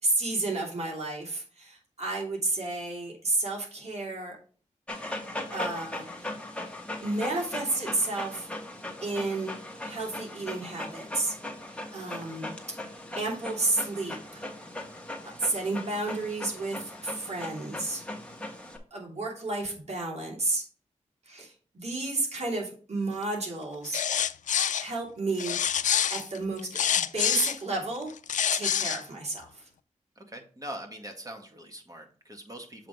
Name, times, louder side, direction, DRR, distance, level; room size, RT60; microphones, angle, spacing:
voice 1, 0.0-4.4 5.5-6.3 7.0-8.5 9.0-9.5 9.8-11.3 11.9-12.8 13.2-14.4 15.2-18.0 18.9-20.6 21.2-24.0 24.8-25.6 26.1-28.1 28.5-29.7, right 2 dB, 60° right, -2 dB, 2.7 m, -31 dB
Dog, 4.9-18.8, left 1 dB, 10° left, 1.6 m, -39 dB
sound 1, 23.8-24.9 25.4-27.6 28.1-29.0, left 9 dB, 75° left, 0.4 m, -26 dB
voice 2, 30.2-32.9, right 1 dB, 25° right, 4 dB, 1.8 m, -42 dB
7.4 x 3.7 x 4.7 m, 0.42 s
cardioid pair, 55°, 13 cm